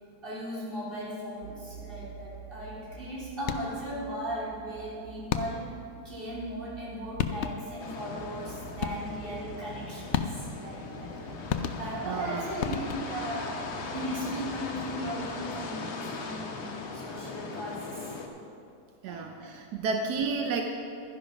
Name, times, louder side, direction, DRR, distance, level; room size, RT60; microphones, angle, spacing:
voice 1, 0.2-5.7 6.0-11.2 11.7-13.7 13.9-18.1 19.0-19.5 19.9-20.1, equal, 35° right, -8 dB, 3.8 m, -37 dB
sound 1, 1.4-15.8, right 9 dB, 65° right, 1.1 m, -49 dB
sound 2, 3.4-3.9 5.3-5.8 6.8-6.9 7.2-7.8 8.8-9.3 10.1-10.7 11.5-12.2 12.6-13.3, left 8 dB, 65° left, 0.7 m, -32 dB
sound 3, 7.8-18.3, left 4 dB, 90° left, 1.6 m, -39 dB
voice 2, 12.0-12.5 19.0-20.6, right 4 dB, 85° right, 4 dB, 1.3 m, -31 dB
12.0 x 10.5 x 5.2 m, 2.6 s
omnidirectional pair, 1.7 m